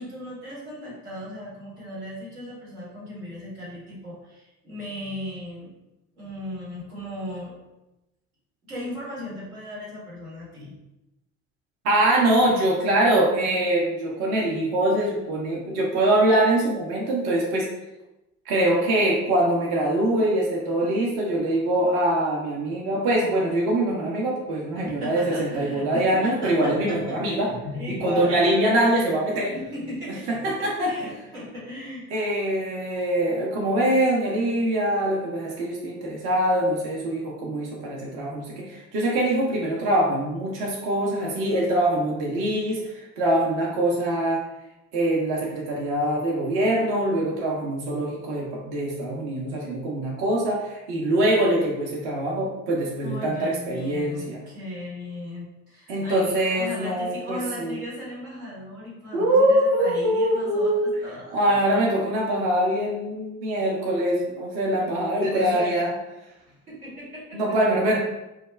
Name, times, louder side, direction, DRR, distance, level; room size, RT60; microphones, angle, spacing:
voice 1, 0.0-5.7 6.2-7.6 8.6-10.8 24.7-28.4 29.5-32.1 53.0-61.6 65.1-66.0 66.5-67.4, left 1 dB, 90° right, -7 dB, 1.1 m, -37 dB
voice 2, 11.8-17.7 18.5-27.5 27.9-29.5 30.3-30.9 32.1-44.4 44.9-54.4 55.9-57.8 59.1-60.9 61.3-65.9 67.3-68.0, right 1 dB, 60° right, -3 dB, 0.7 m, -23 dB
2.3 x 2.1 x 3.1 m, 0.97 s
hypercardioid pair, 60°, 43 cm